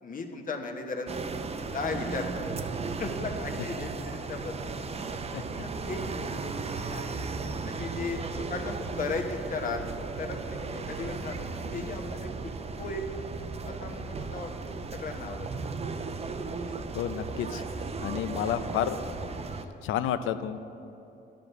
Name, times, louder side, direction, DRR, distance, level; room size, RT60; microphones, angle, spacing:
voice 1, 0.0-2.5 3.0-4.5 5.6-7.2 7.6-11.5 11.7-13.0 13.6-14.5 14.9-15.7, left 3 dB, 45° left, 3 dB, 1.1 m, -36 dB
sound 1, 1.1-19.7, right 4 dB, 30° right, 0.6 m, -36 dB
voice 2, 17.0-17.6 18.0-19.0 19.8-20.6, left 10 dB, 85° left, 12 dB, 0.5 m, -30 dB
11.0 x 5.1 x 6.8 m, 2.9 s
cardioid pair, 90°, 20 cm